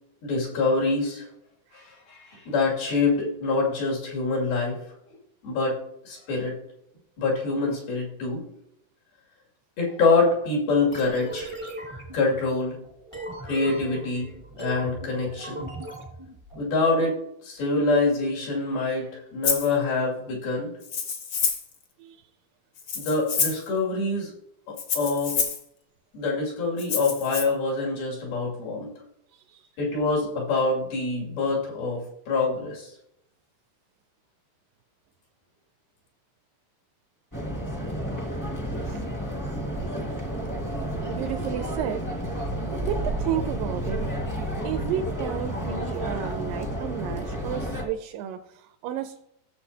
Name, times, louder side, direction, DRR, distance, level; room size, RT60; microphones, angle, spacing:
voice 1, 0.2-1.3 1.7-4.8 5.4-5.8 6.1-6.6 7.2-8.4 9.8-11.5 12.1-12.8 13.4-14.3 14.6-15.6 16.6-17.2 17.4-20.7 23.0-24.3 24.7-25.4 26.1-28.9 29.8-32.9, left 3 dB, 90° left, -3 dB, 4.4 m, -25 dB
sound 1, 10.9-16.6, right 1 dB, 35° right, 0.4 m, -38 dB
Rattle (instrument), 19.4-19.7 20.8-21.7 22.8-23.7 24.8-25.6 26.8-27.4, left 6 dB, 70° left, 1.2 m, -27 dB
voice 2, 22.0-22.3 29.3-29.7 38.8-39.0 41.1-42.1 42.3-42.5 42.7-44.1 44.6-49.2, right 9 dB, 80° right, 9 dB, 2.1 m, -32 dB
sound 2, 37.3-47.8, right 1 dB, 20° left, 0.4 m, -31 dB
16.0 x 6.9 x 2.8 m, 0.79 s
omnidirectional pair, 4.1 m